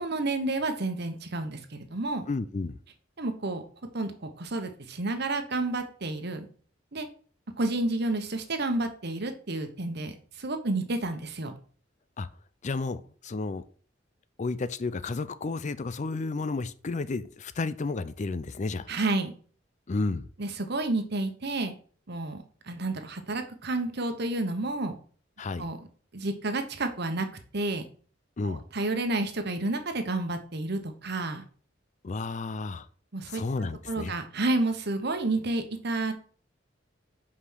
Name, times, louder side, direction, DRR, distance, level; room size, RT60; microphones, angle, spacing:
voice 1, 0.0-2.2 3.2-3.6 3.9-6.5 6.9-7.1 7.6-11.5 18.9-19.3 20.4-21.7 22.1-25.0 25.6-25.8 26.1-27.3 27.5-27.8 28.4-31.4 33.1-33.4 33.9-36.1, right 2 dB, 60° right, 1.2 m, -30 dB
voice 2, 2.3-2.8 12.2-12.3 12.6-13.6 14.4-18.9 19.9-20.3 25.4-25.7 28.4-28.6 32.0-32.9 33.3-34.1, left 3 dB, 40° left, 0.5 m, -32 dB
5.7 x 5.0 x 6.4 m
head